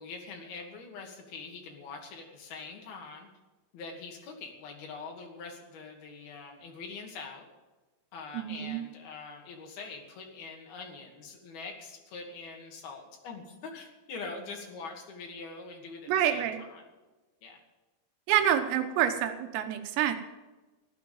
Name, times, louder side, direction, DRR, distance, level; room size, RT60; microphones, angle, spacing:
voice 1, 0.0-3.3 3.7-7.5 8.1-16.8 17.4-17.6, left 4 dB, 55° left, 1 dB, 3.8 m, -44 dB
voice 2, 8.3-8.9 16.1-16.6 18.3-20.2, right 10 dB, 80° right, 7 dB, 3.7 m, -27 dB
15.5 x 12.5 x 5.5 m, 1.2 s
omnidirectional pair, 6.0 m